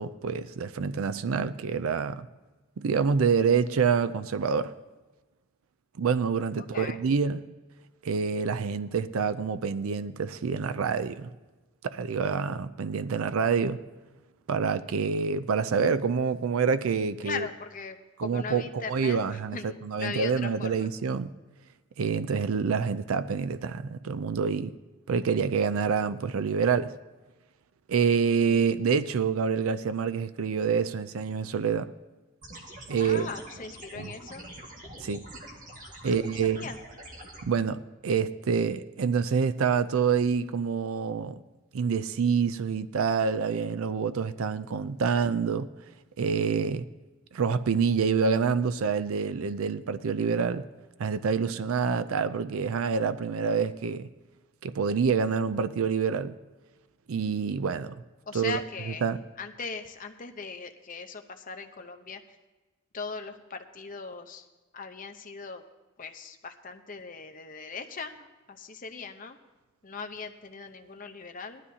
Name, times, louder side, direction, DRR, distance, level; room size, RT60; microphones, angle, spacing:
voice 1, 0.0-2.3 2.8-4.7 6.0-7.4 8.0-11.3 11.8-13.8 14.5-17.5 18.2-19.6 19.8-21.3 22.0-24.7 25.1-26.9 27.9-31.9 32.9-33.3 34.0-34.1 35.0-35.2 36.0-36.7 37.4-41.4 41.7-45.7 46.2-46.8 47.3-50.6 51.0-54.1 54.6-56.4 57.1-58.0 58.3-58.6 59.0-59.2, right 6 dB, 80° right, 13 dB, 0.4 m, -27 dB
voice 2, 6.6-7.0 17.2-20.9 33.0-34.5 36.0-36.8 58.3-59.1 59.4-62.2 62.9-64.5 64.7-65.6 66.0-69.4 69.8-71.7, left 4 dB, 40° left, 7 dB, 0.8 m, -39 dB
sound 1, 32.4-37.4, right 1 dB, 40° right, 1.8 m, -45 dB
18.5 x 12.5 x 2.8 m, 1.2 s
head